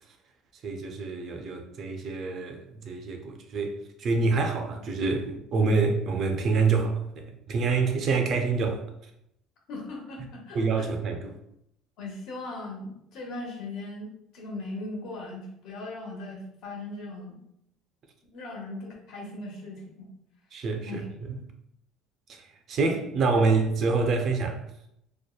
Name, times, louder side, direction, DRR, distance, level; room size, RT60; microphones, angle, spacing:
voice 1, 0.6-8.8 10.5-11.3 20.5-21.4 22.3-22.4 22.7-24.6, right 4 dB, 45° right, 0.3 m, -26 dB
voice 2, 9.7-10.9 12.0-17.4 18.3-20.1 20.8-21.1, left 2 dB, 65° left, 0.8 m, -39 dB
2.7 x 2.1 x 2.2 m
cardioid pair, 140°, 0 cm